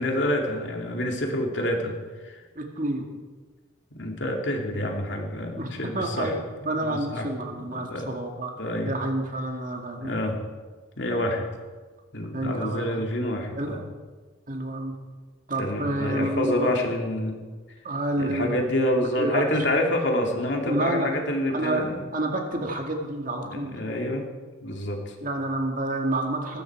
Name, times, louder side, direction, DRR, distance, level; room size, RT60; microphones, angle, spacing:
voice 1, 0.0-1.9 2.2-2.4 3.9-6.3 6.7-8.2 8.6-8.9 10.0-10.4 11.0-11.4 12.1-13.8 15.6-17.4 18.2-22.0 23.5-24.3 24.6-25.1, left 1 dB, 60° left, 2 dB, 2.6 m, -27 dB
voice 2, 2.6-3.1 5.6-5.7 5.9-6.3 6.7-8.5 8.9-10.1 12.3-13.1 13.5-13.8 14.5-14.9 15.5-16.7 17.8-18.5 19.0-19.5 20.7-21.1 21.5-23.8 25.2-26.6, right 1 dB, 40° right, 2 dB, 2.2 m, -29 dB
19.5 x 15.0 x 4.7 m, 1.4 s
head